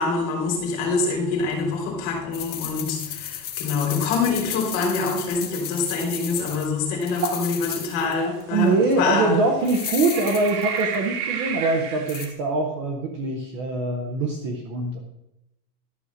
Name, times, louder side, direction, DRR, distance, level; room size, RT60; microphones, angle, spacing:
voice 1, 0.0-9.4, left 4 dB, 40° left, 1 dB, 3.7 m, -25 dB
sound 1, 2.3-6.7 7.0-8.1 8.4-8.5 9.6-10.9 12.1-12.3, left 10 dB, 20° left, 0.7 m, -34 dB
sound 2, 7.2-7.5 8.2-8.3 9.6-12.3, right 6 dB, 75° right, 2.9 m, -30 dB
voice 2, 8.5-15.0, right 3 dB, 20° right, 2 dB, 0.5 m, -23 dB
12.5 x 6.0 x 6.3 m, 0.88 s
supercardioid pair, 180°, 48 cm